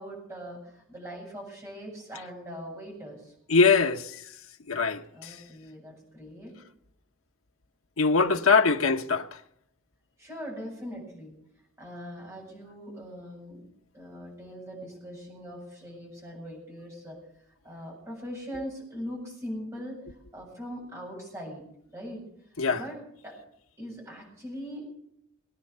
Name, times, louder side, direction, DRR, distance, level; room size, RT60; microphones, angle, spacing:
voice 1, 0.0-3.3 5.1-6.5 10.2-11.3 11.8-13.6 13.9-17.2 17.6-20.0 20.3-21.6 21.9-22.2 22.7-23.4 23.8-24.9, equal, 15° right, 7.7 m, -41 dB
voice 2, 3.5-4.0 4.7-5.0 8.0-9.3 22.6-22.8, left 4 dB, 85° left, 1.1 m, -22 dB
21.0 x 9.9 x 6.9 m
head